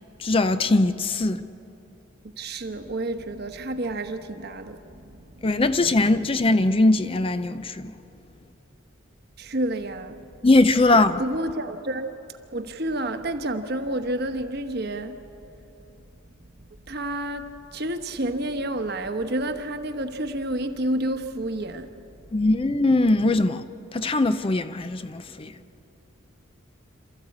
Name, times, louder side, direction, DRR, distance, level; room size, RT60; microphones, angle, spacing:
voice 1, 0.2-1.4 5.4-7.9 10.4-11.2 22.3-23.6 23.9-25.5, left 2 dB, 25° left, 0.5 m, -21 dB
voice 2, 2.4-5.2 9.4-10.2 11.2-12.1 12.5-15.1 16.9-21.9, right 1 dB, 50° right, 1.1 m, -29 dB
28.0 x 14.0 x 8.5 m
head